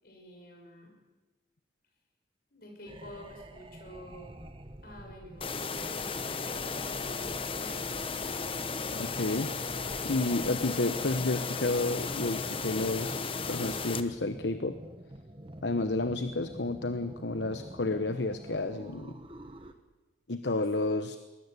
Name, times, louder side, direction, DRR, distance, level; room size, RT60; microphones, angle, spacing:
voice 1, 0.0-0.9 2.5-4.4 4.8-7.3 7.6-7.8, equal, 50° left, 2 dB, 6.6 m, -50 dB
sound 1, 2.9-19.7, right 1 dB, 30° right, 1.3 m, -47 dB
sound 2, 5.4-14.0, left 4 dB, 30° left, 1.0 m, -35 dB
voice 2, 9.0-9.5 10.0-14.8 15.6-19.1 20.3-21.2, left 2 dB, 70° left, 10 dB, 1.1 m, -31 dB
22.0 x 21.0 x 8.3 m, 1.1 s
head